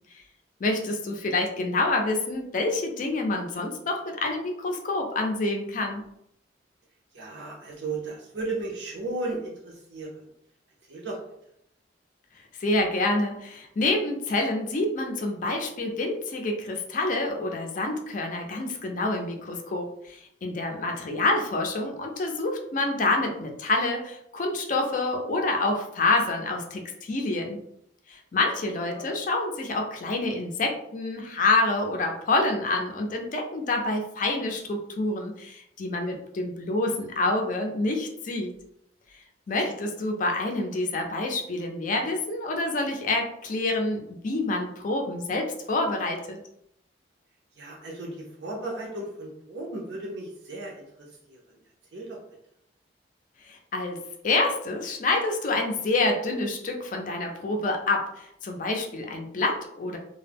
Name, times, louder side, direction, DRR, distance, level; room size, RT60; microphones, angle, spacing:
voice 1, 0.6-6.0 12.6-27.6 28.1-38.5 39.5-46.4 53.5-60.0, left 2 dB, 45° left, 3 dB, 0.4 m, -27 dB
voice 2, 7.1-10.2 10.9-11.2 20.8-21.0 28.9-29.0 39.7-39.8 47.6-51.4 51.9-52.2, right 2 dB, 70° right, -3 dB, 0.5 m, -35 dB
2.1 x 2.0 x 3.3 m, 0.76 s
head